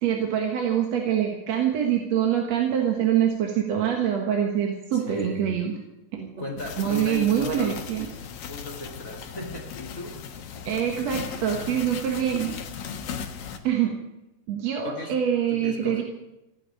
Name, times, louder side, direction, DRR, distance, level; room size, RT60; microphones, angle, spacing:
voice 1, 0.0-5.7 6.1-6.3 6.8-8.1 10.7-12.5 13.6-14.0 14.5-16.0, right 9 dB, 55° right, 2 dB, 2.5 m, -25 dB
voice 2, 4.9-5.6 6.4-10.2 14.8-15.2 15.5-16.0, left 2 dB, 30° left, 1 dB, 2.2 m, -36 dB
sound 1, 6.6-13.6, left 7 dB, 80° left, 3.0 m, -37 dB
16.0 x 8.9 x 9.9 m, 0.94 s
omnidirectional pair, 4.0 m